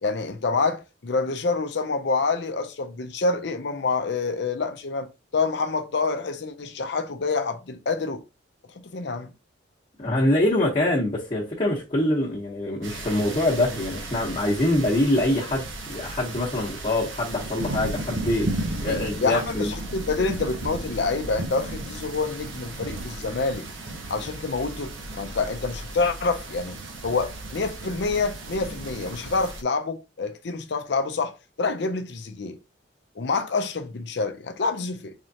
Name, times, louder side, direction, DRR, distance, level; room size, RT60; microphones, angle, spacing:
voice 1, 0.0-8.2 8.8-9.3 19.2-23.7 24.1-26.8 27.0-32.6 33.2-35.1, left 4 dB, 60° left, 0.5 m, -27 dB
voice 2, 10.0-19.7, left 1 dB, 30° left, 1.0 m, -24 dB
sound 1, 12.8-29.6, right 2 dB, 75° right, 0.8 m, -35 dB
3.6 x 3.2 x 2.7 m
head